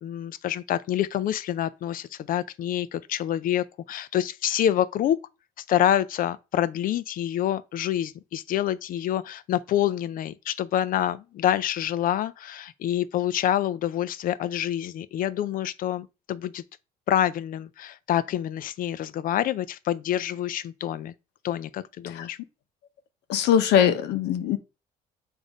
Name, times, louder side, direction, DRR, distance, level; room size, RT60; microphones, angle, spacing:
voice 1, 0.0-5.2 5.7-16.6 17.1-21.1 21.4-22.4, left 11 dB, 55° left, 0.5 m, -27 dB
voice 2, 23.3-24.6, left 9 dB, 80° left, 0.8 m, -21 dB
7.0 x 2.7 x 5.0 m
cardioid pair, 110°, 17 cm